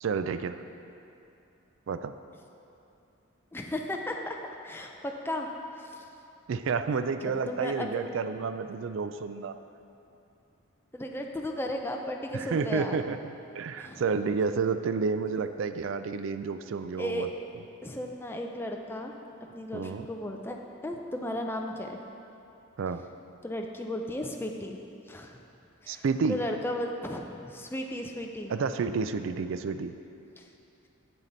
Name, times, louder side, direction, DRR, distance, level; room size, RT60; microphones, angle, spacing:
voice 1, 0.0-0.6 1.9-2.1 6.5-9.6 12.3-17.3 19.7-20.1 22.8-23.0 25.9-26.4 28.5-29.9, right 5 dB, 70° right, 10 dB, 0.4 m, -30 dB
voice 2, 3.5-4.4 4.6-6.0 7.2-8.0 10.9-13.0 13.8-14.0 17.0-17.3 17.8-19.1 19.5-20.6 20.8-22.0 23.4-24.8 25.1-25.4 25.8-28.5 30.4-30.5, left 1 dB, 10° left, 2 dB, 0.5 m, -35 dB
8.2 x 7.3 x 4.0 m, 2.8 s
head